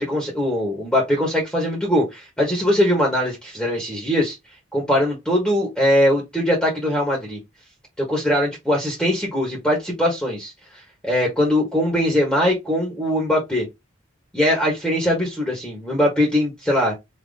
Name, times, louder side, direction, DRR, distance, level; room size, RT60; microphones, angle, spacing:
voice 1, 0.0-4.4 4.7-7.4 8.0-10.5 11.0-13.7 14.3-16.9, left 1 dB, 5° left, 1.2 m, -21 dB
4.0 x 2.9 x 3.5 m
head